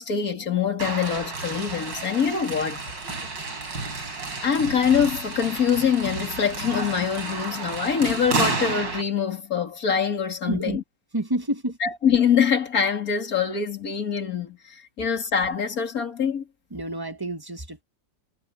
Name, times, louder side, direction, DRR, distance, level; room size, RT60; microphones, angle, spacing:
voice 1, 0.0-2.8 4.1-10.8 11.8-16.4, left 7 dB, 50° left, 3.1 m, -24 dB
sound 1, 0.8-9.0, right 3 dB, 80° right, 5.0 m, -31 dB
voice 2, 10.5-10.8 11.1-11.8 16.7-17.8, right 1 dB, 15° right, 1.1 m, -29 dB
omnidirectional pair, 2.0 m